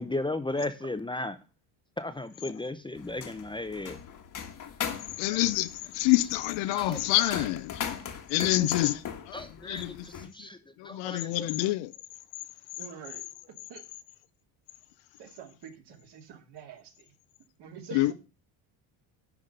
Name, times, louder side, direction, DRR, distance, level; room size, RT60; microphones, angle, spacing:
voice 1, 0.0-1.4 2.0-4.0 5.3-5.6 6.7-7.5 8.4-8.9 9.3-11.6, left 2 dB, 10° left, 0.6 m, -36 dB
sound 1, 3.0-10.3, left 8 dB, 45° left, 1.5 m, -39 dB
voice 2, 5.2-5.7 5.9-7.7 8.3-9.0 9.3-9.4 9.7-10.0 10.8-11.9 17.9-18.1, left 16 dB, 70° left, 0.7 m, -26 dB
voice 3, 12.8-13.2 13.7-13.8 15.2-17.1 17.6-18.1, right 7 dB, 60° right, 2.2 m, -46 dB
10.5 x 3.6 x 6.6 m
cardioid pair, 110°, 45 cm